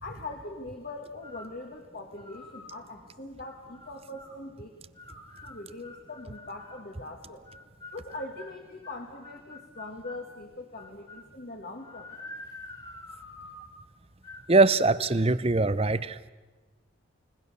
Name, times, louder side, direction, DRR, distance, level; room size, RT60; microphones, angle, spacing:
voice 1, 0.0-4.8 5.4-7.4 7.9-12.2, left 2 dB, 50° left, 3 dB, 2.0 m, -42 dB
sound 1, 1.2-1.6 2.2-2.8 3.4-4.4 5.0-6.9 7.5-10.3 10.8-11.3 11.8-13.8 14.2-14.5 14.8-15.2, left 2 dB, 20° left, 2.1 m, -47 dB
voice 2, 14.5-16.3, right 3 dB, 30° right, 15 dB, 0.7 m, -22 dB
30.0 x 18.5 x 6.9 m, 1.3 s
head